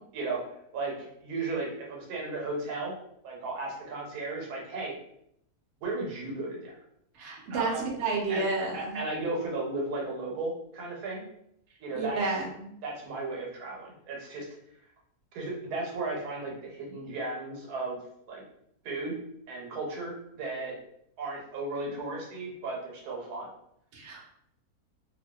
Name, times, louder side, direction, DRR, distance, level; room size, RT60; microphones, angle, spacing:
voice 1, 0.7-2.9 3.2-5.0 5.8-6.8 7.5-7.8 8.3-8.4 8.7-11.2 11.8-12.4 12.8-14.5 15.3-18.0 18.3-18.4 18.8-19.2 19.5-20.7 21.2-23.5, right 2 dB, 85° right, -2 dB, 1.2 m, -35 dB
voice 2, 7.2-9.0 11.9-12.7 23.9-24.2, right 3 dB, 65° right, -1 dB, 0.8 m, -31 dB
2.6 x 2.2 x 2.2 m, 0.74 s
omnidirectional pair, 1.6 m